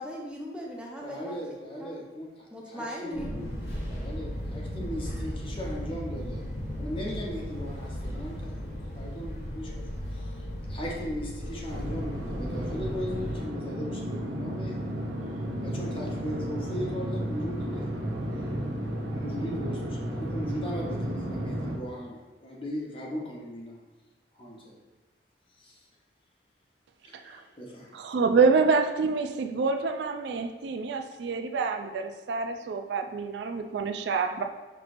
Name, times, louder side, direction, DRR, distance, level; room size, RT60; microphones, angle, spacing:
voice 1, 0.0-1.4 1.8-1.9 2.5-3.4, equal, 5° right, -2 dB, 0.6 m, -38 dB
voice 2, 1.0-3.3 3.9-6.4 6.7-9.8 10.1-15.1 15.6-17.9 19.1-23.8 24.4-24.8 25.6-25.8 27.0-27.9, equal, 30° left, -2 dB, 0.8 m, -38 dB
Fixed-wing aircraft airplane, 3.1-13.4, equal, 65° left, 1.0 m, -36 dB
sound 1, 11.7-21.8, equal, 90° right, 0.8 m, -33 dB
voice 3, 27.9-34.4, right 4 dB, 70° right, 6 dB, 0.3 m, -27 dB
5.9 x 3.0 x 2.5 m, 1.3 s
head